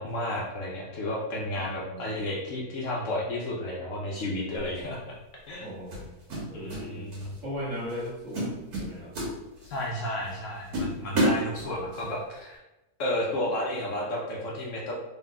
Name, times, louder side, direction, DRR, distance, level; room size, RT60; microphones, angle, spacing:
voice 1, 0.0-5.1 5.5-5.7 6.5-7.4 9.6-12.6 13.0-14.9, left 1 dB, 60° left, -3 dB, 1.0 m, -32 dB
voice 2, 1.5-2.1 5.6-6.1 6.5-7.1 7.4-9.1, equal, 60° right, -6 dB, 1.5 m, -38 dB
sound 1, 4.6-4.8 5.9-6.9 7.1-7.4 7.9-8.1 8.3-9.8 10.3-10.4 10.7-12.0, right 1 dB, 90° right, 1.7 m, -29 dB
3.7 x 3.6 x 2.2 m, 0.98 s
omnidirectional pair, 1.6 m